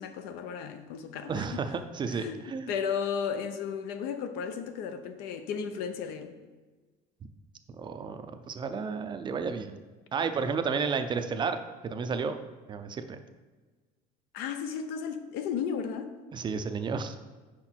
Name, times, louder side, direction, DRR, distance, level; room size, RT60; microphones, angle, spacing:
voice 1, 0.0-1.5 2.1-2.4 2.7-6.3 14.3-16.1, left 7 dB, 75° left, 0.7 m, -34 dB
voice 2, 1.3-2.7 7.8-9.8 10.1-11.6 11.8-12.4 12.7-13.2 16.3-17.2, right 5 dB, 30° right, 0.4 m, -32 dB
5.9 x 4.9 x 4.4 m
cardioid pair, 125°, 16 cm